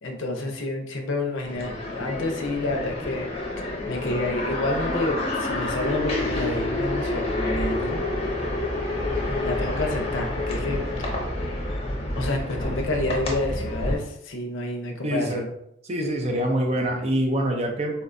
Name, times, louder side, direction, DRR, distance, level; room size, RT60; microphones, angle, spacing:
voice 1, 0.0-3.3 3.8-8.0 9.3-10.8 12.2-15.5, left 2 dB, 70° left, 3 dB, 0.5 m, -29 dB
sound 1, 1.4-14.0, left 1 dB, 30° left, 0.7 m, -28 dB
voice 2, 15.0-15.4 15.9-18.0, right 1 dB, 30° right, 2 dB, 0.5 m, -25 dB
4.1 x 2.1 x 2.5 m, 0.78 s
head